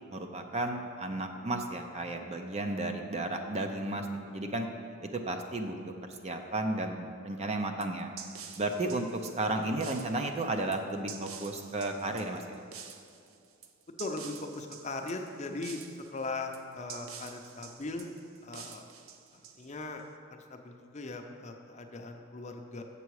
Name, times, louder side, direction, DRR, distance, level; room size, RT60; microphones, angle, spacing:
voice 1, 0.1-4.7 5.0-8.1 8.6-12.6, right 2 dB, 30° right, 4 dB, 0.5 m, -33 dB
sound 1, 7.8-20.0, right 7 dB, 85° right, 0.5 m, -48 dB
voice 2, 13.9-15.8 16.1-18.1 18.4-18.8 19.5-20.0 20.3-22.8, left 3 dB, 35° left, 4 dB, 0.6 m, -39 dB
7.0 x 6.8 x 4.8 m, 2.6 s
head